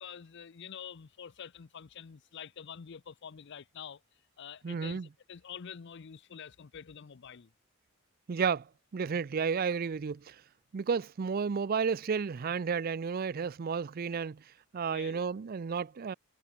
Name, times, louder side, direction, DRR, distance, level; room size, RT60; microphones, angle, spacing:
voice 1, 0.0-4.0 4.4-5.0 5.3-7.5 14.9-15.3, left 7 dB, 55° left, 0.5 m, -47 dB
voice 2, 4.6-5.1 8.3-8.7 8.9-10.4 10.7-14.4 14.7-16.1, right 6 dB, 45° right, 0.4 m, -32 dB
head